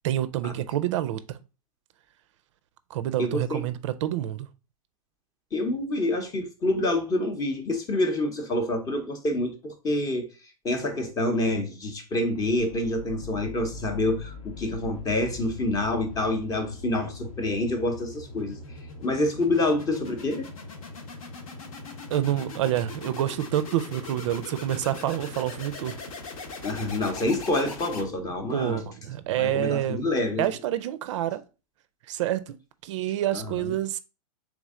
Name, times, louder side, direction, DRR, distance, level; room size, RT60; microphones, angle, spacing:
voice 1, 0.0-1.4 2.9-4.5 22.1-26.0 28.5-30.1 30.4-31.4 32.1-34.0, right 12 dB, 55° right, 0.4 m, -28 dB
voice 2, 3.2-3.6 5.5-10.3 10.6-18.6 19.0-20.5 26.6-28.8 29.4-30.4 33.3-33.5, left 2 dB, 20° left, 0.7 m, -27 dB
sound 1, 12.4-28.5, left 3 dB, 70° left, 1.1 m, -41 dB
3.6 x 3.1 x 3.6 m
hypercardioid pair, 140°, 19 cm